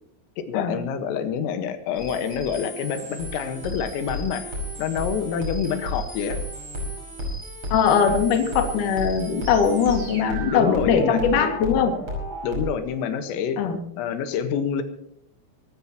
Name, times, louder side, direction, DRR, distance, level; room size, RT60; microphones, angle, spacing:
voice 1, 0.4-4.5 4.8-6.4 10.5-11.5 12.4-13.6 14.0-14.8, left 7 dB, 90° left, 8 dB, 4.2 m, -27 dB
sound 1, 1.9-12.7, equal, 30° right, 6.2 m, -33 dB
voice 2, 7.7-11.9 13.6-13.8, left 6 dB, 50° left, 4 dB, 3.0 m, -21 dB
25.0 x 14.5 x 3.0 m, 0.72 s
omnidirectional pair, 5.8 m